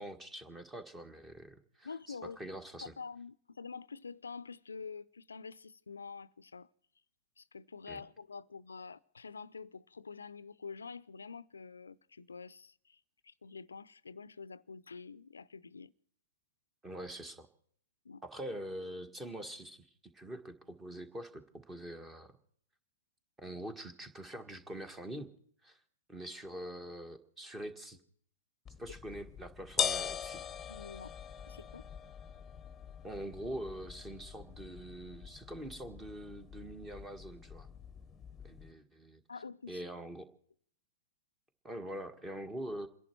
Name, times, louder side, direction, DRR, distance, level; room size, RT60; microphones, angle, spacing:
voice 1, 0.0-2.9 7.9-8.0 16.8-17.5 18.2-22.4 23.4-25.3 25.6-25.8 26.1-28.0 28.8-30.4 33.0-37.7 38.4-39.2 39.7-40.3 41.6-42.9, right 1 dB, 15° right, 1.7 m, -44 dB
voice 2, 1.8-2.4 2.8-6.7 7.4-15.9 18.0-18.2 30.7-31.1 31.5-31.9 39.3-39.8, left 5 dB, 80° left, 0.5 m, -47 dB
sound 1, 28.7-38.7, left 8 dB, 15° left, 1.2 m, -42 dB
28.5 x 11.0 x 4.6 m
figure-of-eight pair, 110°, 0 cm